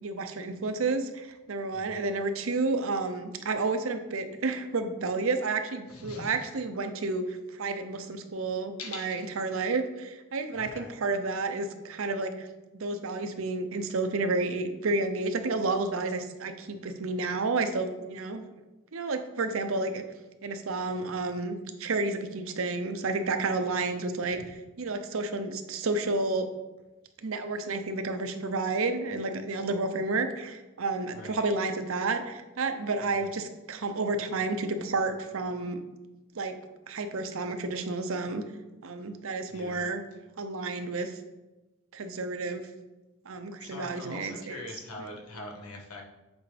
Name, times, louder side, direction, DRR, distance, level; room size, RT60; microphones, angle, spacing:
voice 1, 0.0-12.5 12.7-18.4 18.9-20.0 20.4-24.4 24.8-26.5 27.2-35.8 36.3-36.5 36.9-38.4 38.8-40.0 40.4-41.1 41.9-42.6 43.3-44.6, right 3 dB, 65° right, 8 dB, 0.7 m, -31 dB
voice 2, 1.7-2.2 5.9-6.5 8.8-9.4 10.5-10.9 24.3-24.5 31.1-31.4 33.1-33.3 39.5-39.9 43.6-46.0, left 2 dB, 90° left, 0 dB, 1.3 m, -43 dB
8.1 x 4.9 x 3.3 m, 1.1 s
head